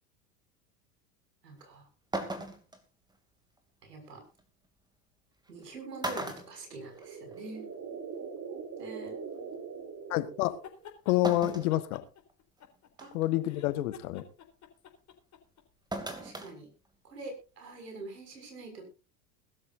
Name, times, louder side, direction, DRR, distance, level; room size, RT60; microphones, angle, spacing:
voice 1, 1.4-1.8 3.8-4.2 5.5-7.7 8.8-9.2 13.0-13.1 16.1-16.7 17.0-18.8, right 3 dB, 85° right, 6.6 m, -45 dB
sound 1, 1.6-1.7 2.1-2.8 4.4-4.5 5.5-5.6 6.0-7.4 7.7-7.8 9.1-9.2 11.2-11.7 12.3-12.4 13.0-13.3 15.9-16.5 16.8-16.9, right 1 dB, 10° right, 2.8 m, -37 dB
sound 2, 6.5-10.9, right 6 dB, 35° right, 3.2 m, -42 dB
voice 2, 10.1-10.6 11.0-12.0 13.1-14.2, left 15 dB, 65° left, 1.6 m, -28 dB
sound 3, 10.5-11.2 11.7-13.1 13.4-15.6, left 9 dB, 35° left, 4.1 m, -50 dB
21.0 x 12.5 x 2.7 m
hypercardioid pair, 85°, 48 cm